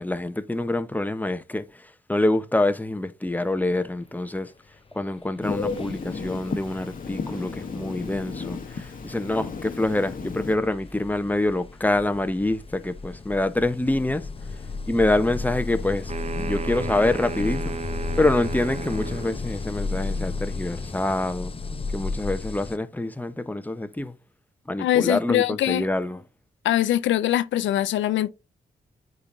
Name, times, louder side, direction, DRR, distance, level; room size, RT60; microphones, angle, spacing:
voice 1, 0.0-4.5 4.9-14.3 14.9-17.8 18.2-21.5 21.9-24.1 24.7-26.2, left 2 dB, 10° left, 0.9 m, -26 dB
sound 1, 5.0-5.2 5.5-22.8, left 3 dB, 30° left, 0.6 m, -34 dB
Telephone, 5.4-10.6, left 4 dB, 45° left, 1.1 m, -33 dB
sound 2, 16.1-19.4, right 4 dB, 35° right, 0.7 m, -34 dB
voice 2, 24.8-25.9 26.6-28.3, left 13 dB, 80° left, 0.5 m, -22 dB
9.7 x 4.1 x 2.6 m
supercardioid pair, 40°, 19 cm